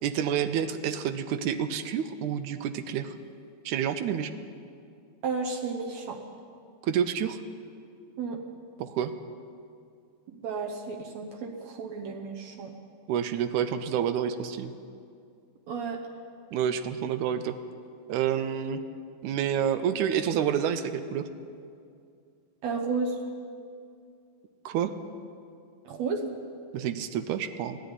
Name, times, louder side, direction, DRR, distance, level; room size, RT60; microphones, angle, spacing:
voice 1, 0.0-3.1 3.7-4.3 6.8-7.4 8.8-9.1 13.1-14.7 16.5-17.6 18.1-18.8 19.2-21.3 24.7-24.9 26.7-27.8, right 9 dB, 85° right, 10 dB, 2.2 m, -28 dB
voice 2, 5.2-6.2 8.2-8.4 10.3-12.7 15.7-16.0 22.6-23.2 25.9-26.3, right 4 dB, 70° right, 2 dB, 2.0 m, -32 dB
14.0 x 10.5 x 9.8 m, 2.3 s
omnidirectional pair, 3.4 m